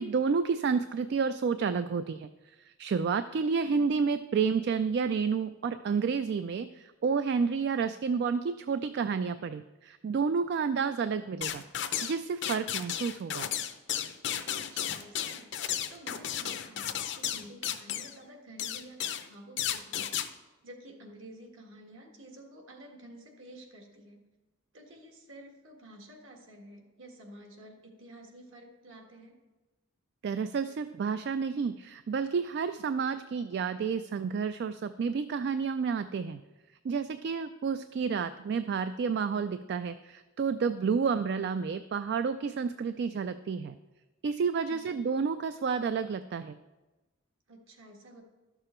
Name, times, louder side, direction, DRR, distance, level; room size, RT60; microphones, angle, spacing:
voice 1, 0.0-11.6 12.0-13.5 30.2-36.4 36.8-43.8 44.2-46.6, right 5 dB, 55° right, 11 dB, 0.3 m, -30 dB
sound 1, 11.4-12.2 12.4-18.1 18.6-19.3 19.6-20.3, left 10 dB, 60° left, 0.6 m, -33 dB
voice 2, 14.5-15.5 15.9-20.1 20.6-24.2 24.7-29.3 44.6-45.1 47.5-48.2, right 1 dB, 70° right, 2 dB, 1.7 m, -51 dB
12.0 x 6.9 x 4.4 m, 1.1 s
head